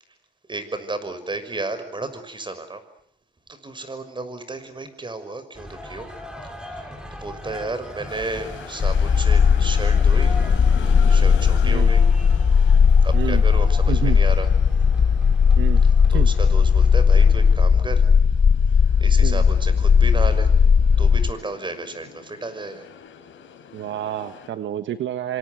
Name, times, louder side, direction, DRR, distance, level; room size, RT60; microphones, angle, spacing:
voice 1, 0.5-2.8 3.5-6.1 6.6-10.4 11.1-12.0 13.0-14.5 15.8-18.1 19.0-20.5 21.0-22.9, right 2 dB, 25° right, 11 dB, 6.3 m, -33 dB
sound 1, 5.5-17.6, equal, 5° right, 6.4 m, -39 dB
sound 2, 8.1-24.5, left 8 dB, 75° left, 5.3 m, -43 dB
sound 3, 8.8-21.3, left 6 dB, 40° left, 1.2 m, -16 dB
voice 2, 13.9-14.2 15.6-15.8 16.1-16.3 19.2-19.4 23.7-25.4, right 11 dB, 70° right, 10 dB, 1.5 m, -28 dB
27.5 x 26.0 x 8.1 m, 0.67 s
cardioid pair, 90°, 20 cm